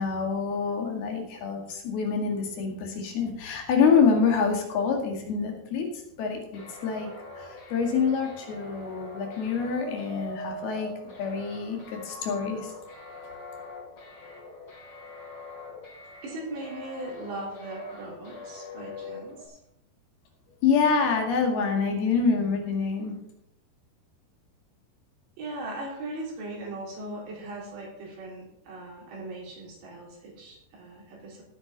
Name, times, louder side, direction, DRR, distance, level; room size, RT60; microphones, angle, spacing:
voice 1, 0.0-7.1 7.3-10.9 11.2-12.7 20.6-23.1, left 5 dB, 70° left, 2 dB, 3.9 m, -26 dB
sound 1, 6.5-19.5, left 1 dB, 40° left, 4.0 m, -43 dB
voice 2, 16.2-19.6 25.4-31.4, right 1 dB, 90° right, -3 dB, 6.0 m, -39 dB
17.0 x 8.4 x 4.0 m, 0.78 s
omnidirectional pair, 4.7 m